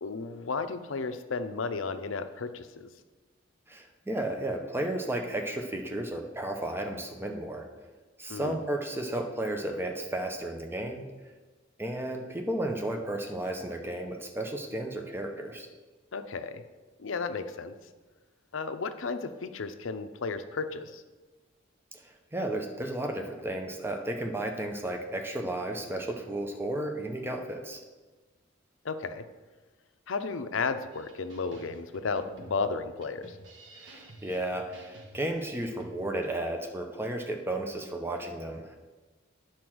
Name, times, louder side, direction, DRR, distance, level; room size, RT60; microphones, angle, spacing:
voice 1, 0.0-2.9 8.3-8.6 16.1-16.6 17.0-17.7 18.5-21.0 28.8-29.3 30.1-33.4, left 4 dB, 80° left, 9 dB, 0.6 m, -33 dB
voice 2, 3.7-7.7 8.2-11.1 11.8-15.7 21.9-27.8 33.7-38.8, right 1 dB, 10° right, 3 dB, 0.8 m, -33 dB
sound 1, 30.9-36.3, right 1 dB, 70° right, 1.3 m, -52 dB
9.4 x 4.4 x 6.2 m, 1.3 s
head